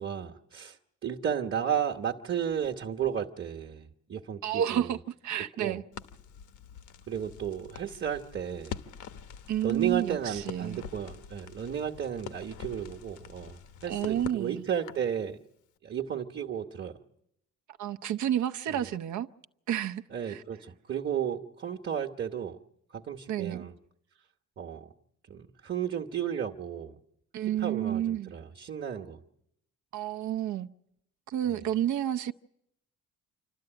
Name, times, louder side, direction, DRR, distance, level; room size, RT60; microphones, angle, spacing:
voice 1, 0.0-4.9 5.6-5.8 7.1-8.8 9.6-15.4 15.8-16.9 18.7-18.8 20.1-22.6 22.9-23.7 24.6-24.9 25.3-26.9 27.6-29.2 31.5-31.6, right 8 dB, 40° right, 1.2 m, -33 dB
voice 2, 4.4-5.8 9.5-10.8 13.9-14.6 17.8-19.3 19.7-20.4 23.3-23.7 27.3-28.4 29.9-30.7 31.3-32.3, right 11 dB, 70° right, 0.8 m, -30 dB
Crackle, 5.9-15.1, left 7 dB, 75° left, 1.1 m, -45 dB
27.5 x 12.5 x 8.9 m
cardioid pair, 90°, 30 cm